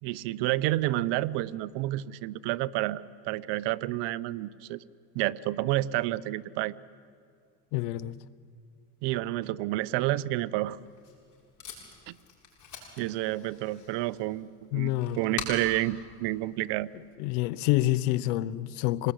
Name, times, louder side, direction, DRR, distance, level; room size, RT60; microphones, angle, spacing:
voice 1, 0.0-4.8 5.1-6.7 9.0-10.8 12.1-12.2 13.0-16.9, right 16 dB, 65° right, 0.9 m, -30 dB
voice 2, 7.7-8.2 14.7-15.2 17.2-19.1, left 16 dB, 80° left, 0.9 m, -27 dB
Packing tape duct tape, 10.7-17.1, left 5 dB, 45° left, 8.0 m, -45 dB
27.0 x 20.0 x 9.9 m
supercardioid pair, 100°, 44 cm